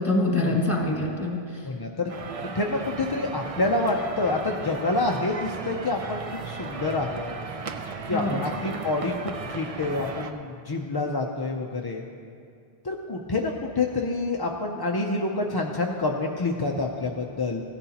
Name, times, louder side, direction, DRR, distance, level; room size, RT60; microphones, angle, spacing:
voice 1, 0.0-1.7 8.1-8.4, left 2 dB, 15° left, -2 dB, 1.7 m, -25 dB
voice 2, 1.6-2.1 2.5-7.3 8.1-12.0 12.8-17.6, left 2 dB, 35° left, 1 dB, 0.4 m, -27 dB
sound 1, 2.1-10.3, right 4 dB, 45° right, 0.5 m, -36 dB
16.0 x 11.0 x 2.9 m, 2.4 s
omnidirectional pair, 1.1 m